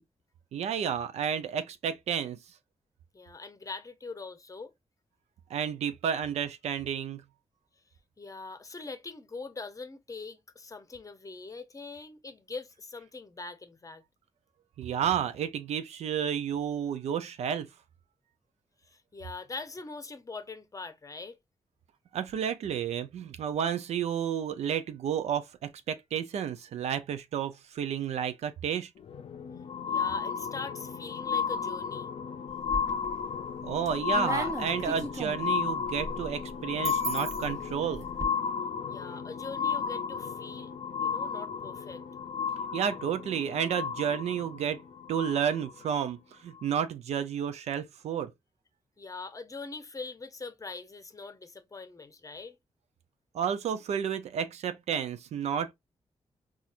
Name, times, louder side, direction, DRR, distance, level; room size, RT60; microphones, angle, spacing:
voice 1, 0.5-2.4 5.5-7.2 14.8-17.7 22.1-28.9 33.6-38.0 42.7-44.8 45.1-48.3 53.3-55.7, right 8 dB, 80° right, 0.4 m, -31 dB
voice 2, 3.1-4.7 8.2-14.0 18.8-21.4 29.9-32.1 38.9-40.7 41.0-42.0 49.0-52.6, left 3 dB, 30° left, 0.7 m, -42 dB
sound 1, 29.0-45.8 46.6-46.7, left 6 dB, 65° left, 0.4 m, -33 dB
sound 2, 32.5-33.2 33.6-38.2, right 1 dB, 30° right, 0.9 m, -38 dB
4.2 x 2.4 x 2.4 m
cardioid pair, 60°, 11 cm